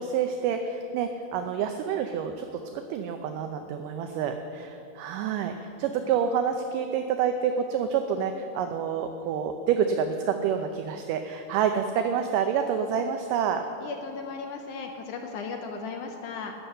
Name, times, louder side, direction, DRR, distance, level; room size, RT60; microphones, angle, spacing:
voice 1, 0.0-2.5 2.7-13.6, right 7 dB, 80° right, 6 dB, 2.0 m, -28 dB
voice 2, 13.8-16.5, left 5 dB, 75° left, 3 dB, 1.9 m, -36 dB
12.0 x 6.7 x 9.8 m, 2.6 s
omnidirectional pair, 4.3 m